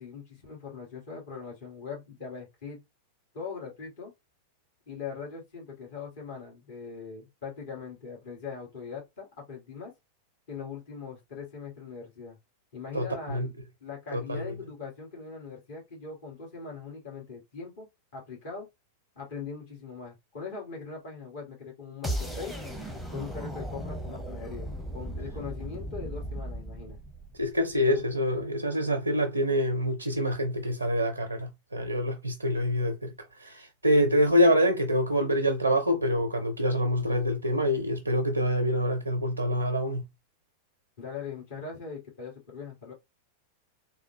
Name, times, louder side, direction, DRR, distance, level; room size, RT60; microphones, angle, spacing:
voice 1, 0.0-2.8 3.3-4.1 4.9-9.9 10.5-12.4 12.7-13.5 13.8-17.9 18.1-18.7 19.1-22.5 23.1-27.0 27.9-28.0 41.0-42.9, left 5 dB, 55° left, 1.6 m, -41 dB
voice 2, 12.9-13.5 14.1-14.5 27.4-40.0, equal, 85° right, 0.5 m, -26 dB
sound 1, 22.0-28.0, right 1 dB, 5° left, 0.7 m, -37 dB
3.6 x 2.1 x 2.6 m
figure-of-eight pair, 90°, 0 cm